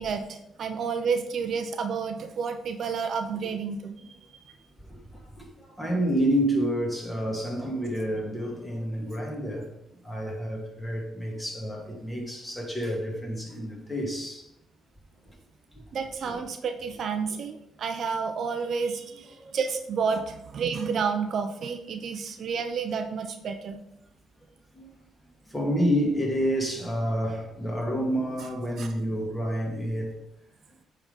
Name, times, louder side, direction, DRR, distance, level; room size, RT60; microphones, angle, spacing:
voice 1, 0.0-3.9 15.9-23.8 28.8-28.9, right 5 dB, 60° right, 0.7 m, -30 dB
voice 2, 5.4-9.7 10.0-14.5 16.2-16.4 17.3-17.4 19.4-19.5 24.8-24.9 25.5-30.1, equal, 10° left, 2.3 m, -29 dB
8.4 x 3.9 x 5.2 m
cardioid pair, 90°, 0 cm